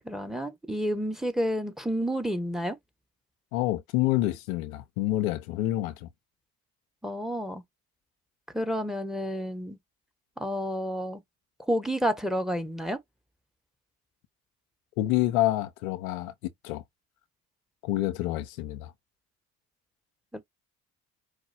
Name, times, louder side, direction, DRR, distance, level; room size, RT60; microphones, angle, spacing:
voice 1, 0.0-2.8 7.0-7.6 8.5-9.8 10.4-11.2 11.6-13.0 20.3-20.4, equal, ahead, 1.3 m, -30 dB
voice 2, 3.5-6.1 15.0-16.8 17.8-18.9, left 15 dB, 85° left, 0.7 m, -28 dB
4.9 x 2.3 x 4.3 m
hypercardioid pair, 50°, 41 cm